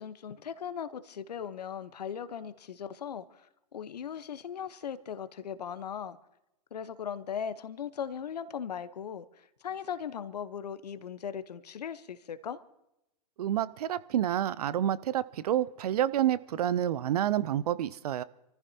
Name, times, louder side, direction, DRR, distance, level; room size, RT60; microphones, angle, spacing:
voice 1, 0.0-3.5 3.7-6.2 6.7-12.6, left 8 dB, 80° left, 1.0 m, -38 dB
voice 2, 13.4-18.2, right 11 dB, 70° right, 0.6 m, -28 dB
28.0 x 14.5 x 2.8 m
hypercardioid pair, 115°, 20 cm